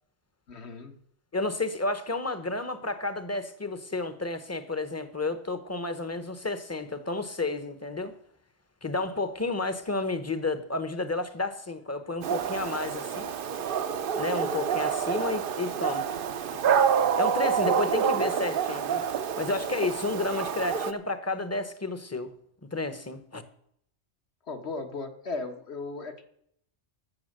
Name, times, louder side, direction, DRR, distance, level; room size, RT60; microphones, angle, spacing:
voice 1, 0.5-0.9 24.5-26.2, left 3 dB, 65° left, 6 dB, 1.6 m, -36 dB
voice 2, 1.3-8.1 8.8-13.3 14.2-16.1 16.6-16.9 17.2-19.0 19.4-22.3 22.7-23.4, left 2 dB, 15° left, 11 dB, 0.8 m, -31 dB
Dog, 12.2-20.9, right 7 dB, 55° right, 0.8 m, -28 dB
13.5 x 7.1 x 6.5 m, 0.70 s
omnidirectional pair, 1.2 m